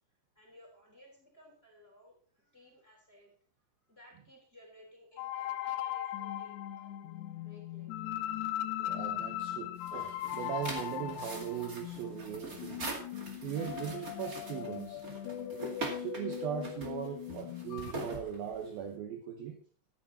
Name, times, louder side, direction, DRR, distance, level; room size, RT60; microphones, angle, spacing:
voice 1, 0.1-3.3 3.8-8.1, left 1 dB, 15° left, 0 dB, 3.1 m, -59 dB
sound 1, 5.2-17.9, left 12 dB, 80° left, 2.8 m, -39 dB
voice 2, 8.8-12.9 13.4-15.0 16.0-19.6, right 8 dB, 70° right, 4 dB, 2.6 m, -39 dB
sound 2, 9.8-18.9, right 2 dB, 35° right, 1.5 m, -43 dB
14.0 x 9.4 x 4.2 m, 0.43 s
omnidirectional pair, 5.1 m